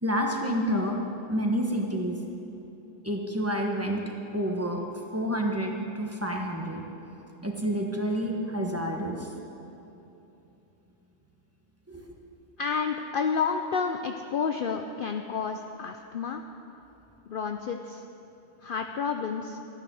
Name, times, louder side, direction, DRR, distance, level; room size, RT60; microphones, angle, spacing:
voice 1, 0.0-1.0 1.3-2.2 3.0-4.0 4.3-4.8 5.1-6.9 7.4-9.3 11.9-12.0, equal, 10° right, 0 dB, 1.2 m, -29 dB
voice 2, 12.6-16.4 17.3-18.0 18.6-19.6, left 5 dB, 55° left, 5 dB, 0.6 m, -30 dB
13.5 x 10.0 x 6.3 m, 3.0 s
omnidirectional pair, 1.3 m